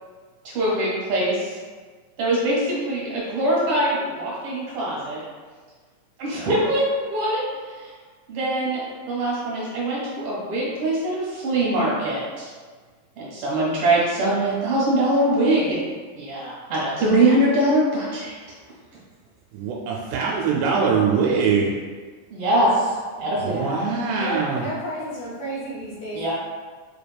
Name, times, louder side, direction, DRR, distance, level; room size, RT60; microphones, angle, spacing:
voice 1, 0.4-1.5 2.2-5.2 6.2-7.4 7.7-7.9 8.3-12.5 13.2-15.8 16.1-18.4 22.3-23.7 26.1-26.3, right 1 dB, 60° right, -9 dB, 2.7 m, -23 dB
voice 2, 19.5-21.8 23.4-24.7, right 5 dB, 85° right, -2 dB, 2.3 m, -22 dB
voice 3, 23.4-26.3, equal, 70° left, -10 dB, 2.9 m, -32 dB
6.6 x 3.4 x 2.3 m, 1.5 s
omnidirectional pair, 4.0 m